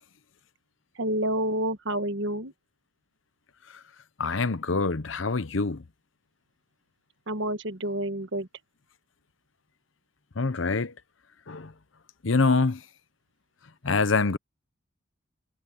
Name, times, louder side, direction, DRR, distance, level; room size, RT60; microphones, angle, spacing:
voice 1, 1.0-2.5 7.3-8.5, right 1 dB, 65° right, 1.4 m, -29 dB
voice 2, 4.2-5.8 10.4-10.9 11.5-11.7 12.2-12.8 13.8-14.4, left 4 dB, 70° left, 0.9 m, -25 dB
head